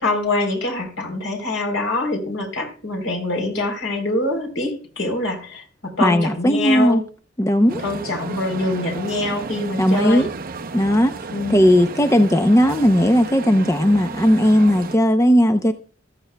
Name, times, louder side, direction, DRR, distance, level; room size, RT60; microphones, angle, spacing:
voice 1, 0.0-7.0 7.8-10.3 11.3-11.6, left 2 dB, 70° left, 3.6 m, -24 dB
voice 2, 6.0-7.0 7.4-7.8 9.8-10.3 10.7-11.1 11.5-15.7, equal, 15° left, 0.6 m, -16 dB
sound 1, 7.7-15.0, right 3 dB, 45° right, 0.7 m, -33 dB
14.5 x 14.0 x 2.2 m
head